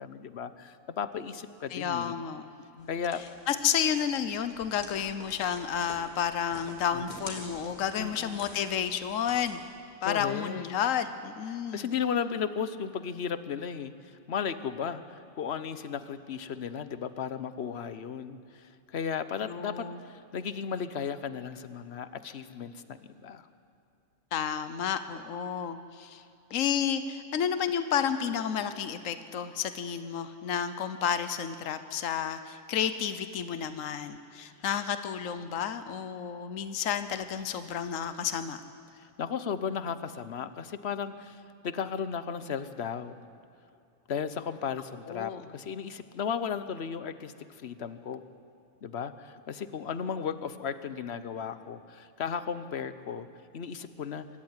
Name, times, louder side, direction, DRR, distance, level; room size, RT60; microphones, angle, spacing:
voice 1, 0.0-2.2 2.9-3.2 6.9-7.0 8.0-8.6 10.0-10.7 11.7-23.5 38.9-43.1 44.1-48.2 48.8-53.3 53.5-54.3, left 7 dB, 55° left, 12 dB, 1.1 m, -35 dB
voice 2, 1.7-2.4 2.8-2.9 3.5-9.6 10.0-11.9 19.5-20.0 24.3-26.2 26.5-38.6 45.1-45.4, left 8 dB, 75° left, 11 dB, 1.3 m, -31 dB
sound 1, 2.8-9.5, left 1 dB, 30° left, 3.2 m, -48 dB
25.0 x 13.5 x 9.7 m, 2.7 s
omnidirectional pair, 1.4 m